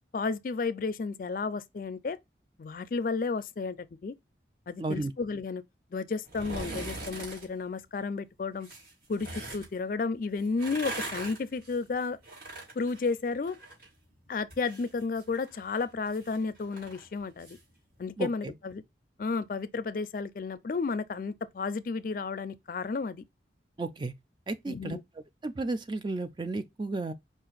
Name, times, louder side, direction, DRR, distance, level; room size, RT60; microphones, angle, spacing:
voice 1, 0.1-2.2 2.6-3.8 4.0-4.1 4.7-5.6 5.9-8.7 9.1-12.2 12.8-13.6 14.3-17.6 18.0-18.8 19.2-23.2 24.7-25.0, left 4 dB, 50° left, 0.4 m, -32 dB
voice 2, 4.8-5.1 18.2-18.5 23.8-24.1 24.5-25.0 25.4-27.1, right 2 dB, 25° right, 0.4 m, -33 dB
sound 1, 6.2-7.5 8.6-9.7 10.4-13.9 14.2-17.6 18.0-18.1, right 2 dB, 50° right, 2.4 m, -41 dB
5.0 x 2.4 x 3.8 m
head